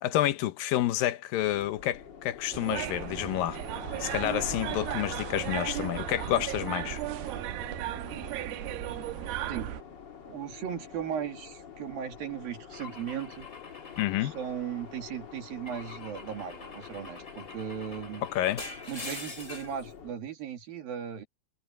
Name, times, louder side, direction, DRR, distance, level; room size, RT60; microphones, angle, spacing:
voice 1, 0.0-3.6 4.0-7.0 14.0-14.3 18.3-18.6, left 13 dB, 75° left, 2.6 m, -29 dB
sound 1, 1.4-20.1, left 6 dB, 40° left, 1.8 m, -45 dB
sound 2, 2.5-9.8, right 15 dB, 90° right, 2.8 m, -36 dB
voice 2, 9.5-9.8 10.3-13.5 14.2-18.3 18.9-21.3, right 8 dB, 70° right, 4.3 m, -37 dB
Car / Engine / Glass, 12.7-15.0 15.7-19.8, left 3 dB, 20° left, 3.8 m, -45 dB
omnidirectional pair, 4.4 m